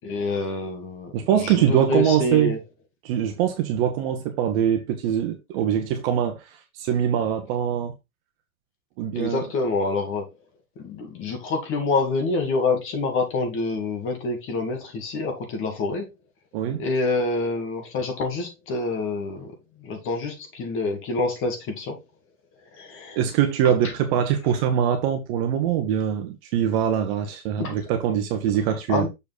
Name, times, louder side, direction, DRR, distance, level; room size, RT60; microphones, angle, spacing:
voice 1, 0.0-2.6 9.1-10.3 10.8-16.1 16.8-22.0 22.7-23.2 23.6-23.9 27.6-27.8 28.9-29.1, left 3 dB, 30° left, 2.0 m, -27 dB
voice 2, 1.1-2.5 3.0-6.5 6.7-7.9 9.0-9.4 16.5-16.8 23.1-29.1, right 9 dB, 40° right, 1.4 m, -23 dB
7.0 x 4.8 x 4.0 m
hypercardioid pair, 130°, 44 cm